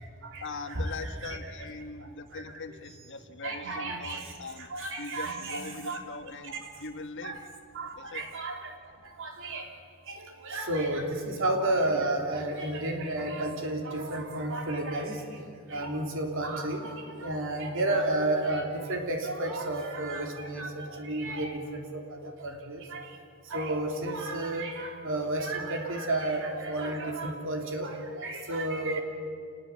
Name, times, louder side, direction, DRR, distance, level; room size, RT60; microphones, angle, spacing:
voice 1, 0.4-4.7 5.0-7.4 8.0-8.2, left 3 dB, 60° left, 8 dB, 1.4 m, -41 dB
voice 2, 3.4-4.2 4.7-6.0 6.5-6.6 7.2-7.3 7.8-7.9 8.1-8.6 9.2-9.6 10.4-15.2 15.7-16.8 17.2-20.7 21.0-21.5 22.4-23.0 23.5-27.9 28.2-29.0, right 2 dB, 65° right, 3 dB, 3.4 m, -31 dB
28.0 x 20.0 x 7.4 m, 2.4 s
head